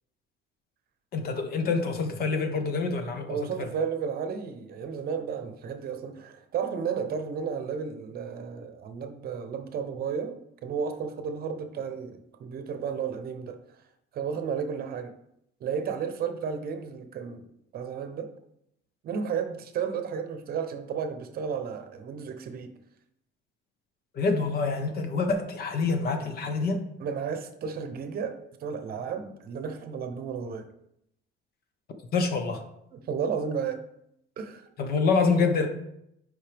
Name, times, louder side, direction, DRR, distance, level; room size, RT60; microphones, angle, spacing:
voice 1, 1.1-3.4 24.2-26.8 32.1-32.6 34.8-35.7, left 4 dB, 50° left, 6 dB, 1.0 m, -26 dB
voice 2, 3.3-13.6 14.1-15.1 15.6-17.5 17.7-18.3 19.0-22.7 27.0-30.7 32.9-33.8 34.4-34.7, right 6 dB, 50° right, 8 dB, 0.8 m, -33 dB
8.8 x 5.3 x 3.4 m, 0.77 s
cardioid pair, 160°, 20 cm